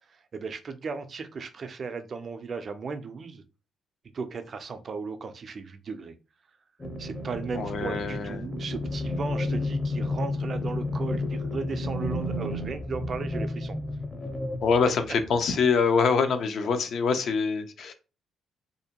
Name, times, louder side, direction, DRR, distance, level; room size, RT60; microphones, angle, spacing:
voice 1, 0.0-3.4 4.1-6.1 7.0-13.8, right 5 dB, 45° right, 0.4 m, -36 dB
sound 1, 6.8-15.5, left 2 dB, 20° left, 0.5 m, -32 dB
voice 2, 7.5-8.5 14.6-17.9, left 5 dB, 65° left, 0.5 m, -25 dB
2.6 x 2.1 x 2.8 m
cardioid pair, 90°, 0 cm